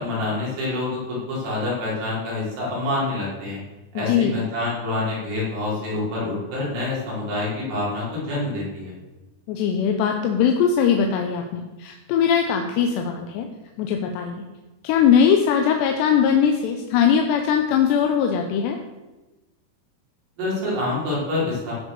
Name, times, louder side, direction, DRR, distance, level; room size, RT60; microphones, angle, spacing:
voice 1, 0.0-3.6 3.9-8.9 20.4-21.7, left 2 dB, 75° right, -7 dB, 6.6 m, -27 dB
voice 2, 4.0-4.3 9.5-13.5 13.8-14.4 14.8-18.8, left 7 dB, 85° left, 4 dB, 3.0 m, -20 dB
16.0 x 5.4 x 6.7 m, 1.1 s
omnidirectional pair, 4.7 m